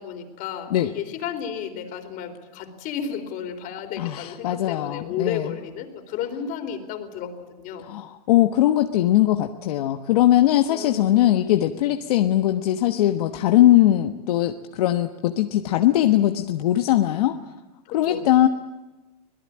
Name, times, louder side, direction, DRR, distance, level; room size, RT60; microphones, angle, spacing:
voice 1, 0.0-7.3 7.6-7.9 10.7-11.3 17.9-18.2, left 8 dB, 45° left, 7 dB, 3.9 m, -33 dB
voice 2, 4.0-5.5 7.8-17.4 17.9-18.5, left 13 dB, 70° left, 6 dB, 1.3 m, -20 dB
25.5 x 18.0 x 8.8 m, 1.1 s
hypercardioid pair, 125°, 20 cm